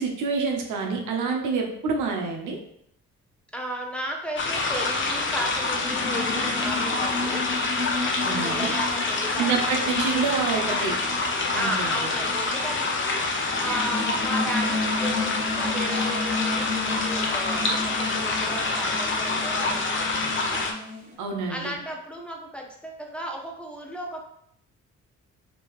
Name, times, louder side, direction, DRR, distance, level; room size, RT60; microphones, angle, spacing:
voice 1, 0.0-2.6 8.2-8.7 9.4-11.0 11.5-12.1 21.2-21.8, right 4 dB, 80° right, 1 dB, 1.0 m, -27 dB
voice 2, 3.5-7.4 8.3-10.0 11.5-20.7 21.5-24.2, equal, 5° left, -1 dB, 0.8 m, -35 dB
sound 1, 4.4-20.7, left 3 dB, 40° left, 0.8 m, -26 dB
sound 2, 4.7-21.1, left 3 dB, 20° right, 1.6 m, -34 dB
4.5 x 3.1 x 3.1 m, 0.71 s
cardioid pair, 90°, 30 cm